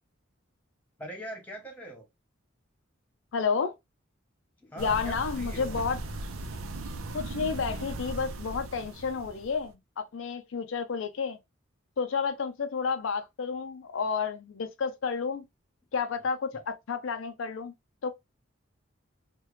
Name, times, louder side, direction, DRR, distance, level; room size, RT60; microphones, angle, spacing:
voice 1, 1.0-2.0 4.6-5.8, right 1 dB, 10° left, 1.0 m, -42 dB
voice 2, 3.3-3.7 4.8-6.0 7.1-11.4 12.0-15.4 15.9-17.7 18.0-18.1, left 5 dB, 70° left, 0.4 m, -31 dB
sound 1, 4.8-9.7, right 2 dB, 90° right, 0.6 m, -38 dB
3.2 x 2.2 x 3.1 m
head